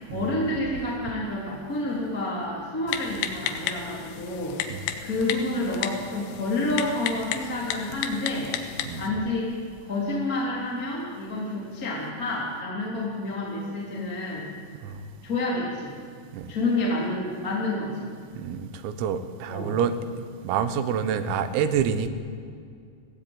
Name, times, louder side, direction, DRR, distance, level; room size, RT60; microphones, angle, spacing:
voice 1, 0.1-4.7 5.0-8.5 8.9-9.5 9.9-14.4 15.2-15.9 16.5-18.1 19.5-19.7, left 2 dB, 20° left, -4 dB, 3.0 m, -29 dB
Typing, 2.9-9.1, left 9 dB, 85° left, 3.9 m, -33 dB
voice 2, 8.9-9.2 14.8-15.0 16.3-16.5 18.4-20.0 20.4-22.1, right 7 dB, 85° right, 10 dB, 4.0 m, -27 dB
21.5 x 16.5 x 8.9 m, 2.2 s
omnidirectional pair, 5.9 m